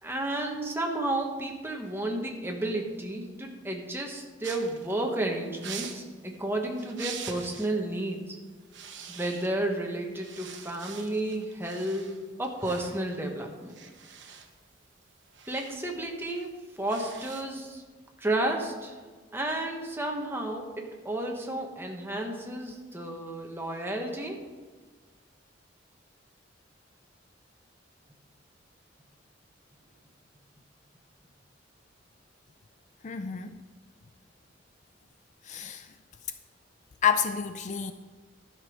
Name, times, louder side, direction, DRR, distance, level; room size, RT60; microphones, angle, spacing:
voice 1, 0.0-8.3 9.1-13.8 15.5-17.8 18.2-18.9 19.3-24.4, right 1 dB, 10° right, 1 dB, 1.3 m, -32 dB
sound 1, 4.4-7.8 8.1-8.3 8.6-9.8 10.1-17.7, right 7 dB, 70° right, 1.1 m, -45 dB
voice 2, 33.0-33.6 35.5-35.9 37.0-37.9, left 8 dB, 40° left, 10 dB, 0.4 m, -28 dB
12.5 x 6.2 x 5.1 m, 1.4 s
head